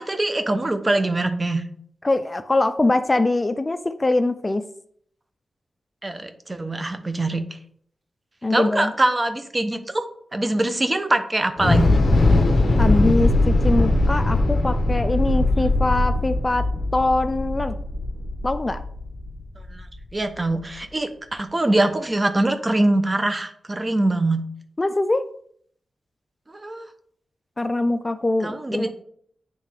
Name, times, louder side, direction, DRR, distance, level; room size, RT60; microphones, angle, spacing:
voice 1, 0.0-1.6 6.0-7.4 8.5-10.1 10.3-11.9 19.7-19.8 20.1-24.4 26.5-26.9 28.4-28.9, right 2 dB, 30° right, 9 dB, 0.7 m, -23 dB
voice 2, 2.0-4.6 8.4-8.9 12.8-16.7 16.9-17.8 18.4-18.8 24.8-25.2 27.6-28.9, left 2 dB, 25° left, 10 dB, 0.3 m, -22 dB
Thunder / Explosion, 11.6-19.8, left 2 dB, 60° left, 0.8 m, -20 dB
8.4 x 3.2 x 3.5 m, 0.63 s
cardioid pair, 70°, 0 cm